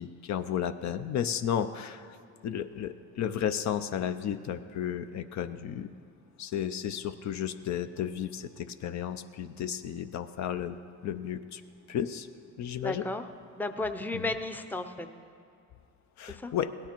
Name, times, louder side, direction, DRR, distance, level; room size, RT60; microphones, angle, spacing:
voice 1, 0.0-2.2 2.4-5.9 6.4-10.8 11.0-11.6 11.9-12.3 12.6-13.1 14.1-14.3 16.2-16.7, left 9 dB, 65° left, 10 dB, 0.6 m, -33 dB
voice 2, 12.8-13.2 13.6-15.1 16.3-16.5, left 2 dB, 5° left, 7 dB, 0.6 m, -33 dB
17.0 x 9.8 x 4.5 m, 2.3 s
cardioid pair, 90°, 30 cm